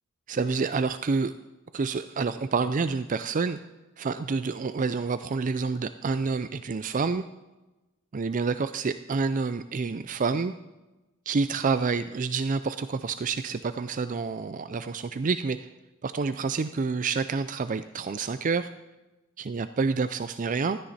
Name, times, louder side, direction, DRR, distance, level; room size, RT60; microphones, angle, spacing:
voice 1, 0.3-1.3 1.7-3.6 4.0-7.2 8.1-10.5 11.3-15.7 16.0-18.7 19.4-20.8, right 4 dB, 35° right, 12 dB, 0.4 m, -28 dB
16.0 x 13.0 x 4.2 m, 1.1 s
head